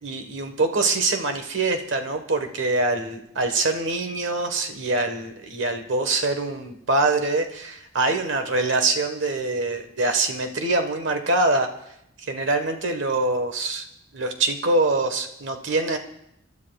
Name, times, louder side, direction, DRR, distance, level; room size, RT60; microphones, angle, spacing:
voice 1, 0.0-11.7 12.2-13.8 14.1-16.0, right 2 dB, 60° right, 6 dB, 1.4 m, -24 dB
29.0 x 12.5 x 2.4 m, 0.78 s
head